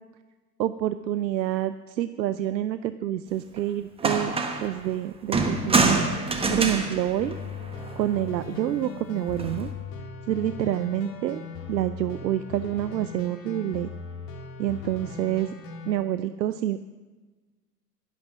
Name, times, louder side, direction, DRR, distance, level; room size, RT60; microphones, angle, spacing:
voice 1, 0.6-4.3 4.6-7.4 8.0-9.7 10.3-11.4 11.7-13.9 14.6-15.5 15.8-16.9, right 12 dB, 80° right, 13 dB, 0.6 m, -27 dB
sound 1, 3.6-3.7 4.0-4.7 5.3-8.0 9.3-9.7, right 3 dB, 10° right, 1.2 m, -26 dB
sound 2, 7.2-15.9, left 5 dB, 40° left, 2.0 m, -39 dB
11.5 x 11.5 x 6.0 m, 1.3 s
hypercardioid pair, 105°, 50 cm